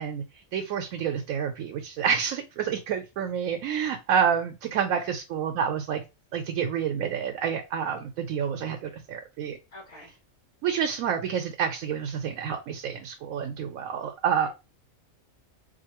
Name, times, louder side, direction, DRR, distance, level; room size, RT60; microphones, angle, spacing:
voice 1, 0.0-6.0 6.3-9.6 10.6-14.5, right 7 dB, 90° right, 1.0 m, -28 dB
voice 2, 9.7-10.2 14.4-14.5, left 1 dB, 75° left, 2.5 m, -46 dB
4.1 x 2.6 x 2.9 m
omnidirectional pair, 1.4 m